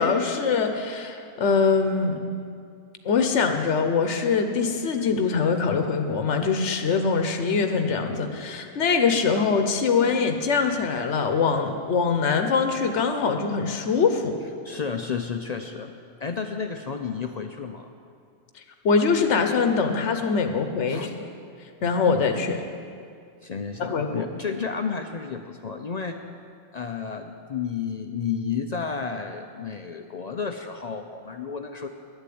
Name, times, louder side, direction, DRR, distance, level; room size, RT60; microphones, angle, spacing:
voice 1, 0.0-2.2 3.0-14.3 18.8-21.1 21.8-22.6 23.8-24.2, left 5 dB, 90° left, 6 dB, 1.2 m, -23 dB
voice 2, 14.6-15.9 16.2-17.9 20.9-21.1 23.4-26.2 26.7-31.9, left 6 dB, 50° left, 6 dB, 0.5 m, -31 dB
11.0 x 8.2 x 8.5 m, 2.3 s
omnidirectional pair, 1.2 m